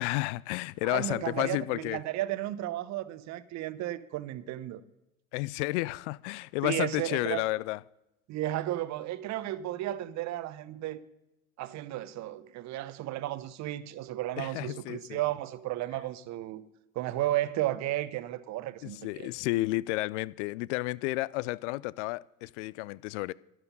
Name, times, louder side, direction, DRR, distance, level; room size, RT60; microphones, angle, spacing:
voice 1, 0.0-2.0 5.3-7.8 14.4-15.2 18.8-23.3, left 20 dB, 55° left, 0.5 m, -32 dB
voice 2, 0.8-4.8 6.6-7.4 8.3-11.0 11.6-16.6 16.9-19.3, right 14 dB, 40° right, 0.9 m, -33 dB
12.5 x 11.5 x 5.4 m
hypercardioid pair, 80°, 42 cm